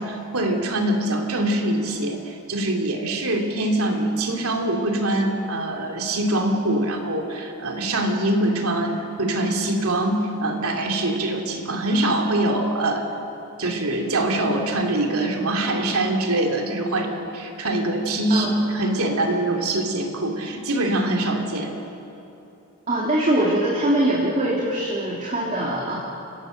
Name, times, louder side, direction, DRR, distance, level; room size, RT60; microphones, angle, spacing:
voice 1, 0.0-13.1 13.6-18.5 18.7-21.7, right 1 dB, 85° right, 2 dB, 2.8 m, -24 dB
voice 2, 22.9-25.9, right 1 dB, 35° right, -4 dB, 2.8 m, -22 dB
29.5 x 17.5 x 6.5 m, 2.9 s
head